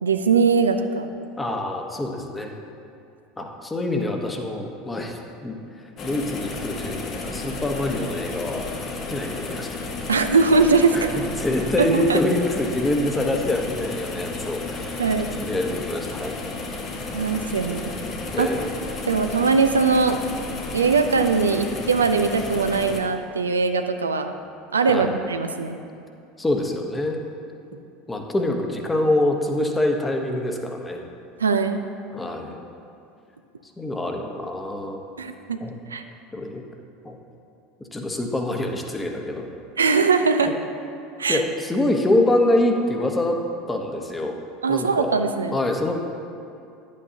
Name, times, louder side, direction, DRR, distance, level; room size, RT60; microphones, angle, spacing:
voice 1, 0.0-1.1 10.1-11.2 11.8-12.2 15.0-15.3 17.1-18.0 18.4-18.6 19.1-20.2 20.7-24.3 24.7-25.8 31.4-31.8 35.2-35.6 35.9-36.0 39.8-40.5 41.2-41.4 44.6-45.6, right 4 dB, 85° right, 7 dB, 0.3 m, -21 dB
voice 2, 1.4-2.5 3.4-5.6 6.0-8.7 9.1-9.8 10.9-15.0 15.4-16.4 18.3-18.7 24.9-25.1 26.4-27.2 28.1-31.0 32.1-32.6 33.8-35.0 35.6-35.7 36.3-36.6 37.0-37.2 37.9-39.5 41.3-43.4 43.7-44.4 44.7-45.2 45.5-45.9, left 1 dB, 15° left, 3 dB, 0.9 m, -25 dB
sound 1, 6.0-23.0, left 3 dB, 45° left, 1.0 m, -33 dB
9.7 x 8.4 x 2.8 m, 2.5 s
hypercardioid pair, 75°, 0 cm